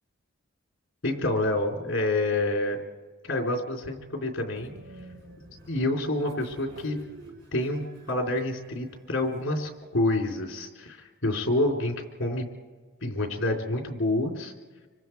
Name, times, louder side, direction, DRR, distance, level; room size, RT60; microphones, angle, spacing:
voice 1, 1.0-2.8 3.2-4.7 5.7-7.0 7.5-12.5 13.0-14.5, left 2 dB, 65° left, 2 dB, 3.5 m, -28 dB
Train, 4.6-9.8, equal, 55° right, 4.5 m, -50 dB
26.0 x 25.0 x 4.6 m, 1.4 s
head